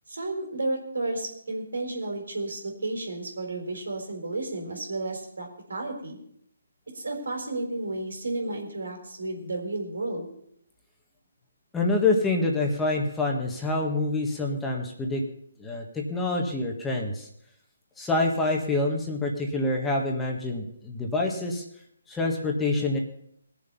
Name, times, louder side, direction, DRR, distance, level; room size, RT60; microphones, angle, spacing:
voice 1, 0.1-6.2 6.9-10.3, right 2 dB, 85° right, 2 dB, 4.0 m, -32 dB
voice 2, 11.7-15.2 15.6-17.3 18.0-21.6 22.1-23.0, left 2 dB, 10° left, 0 dB, 1.6 m, -26 dB
20.0 x 7.1 x 5.5 m, 0.69 s
hypercardioid pair, 155°, 0 cm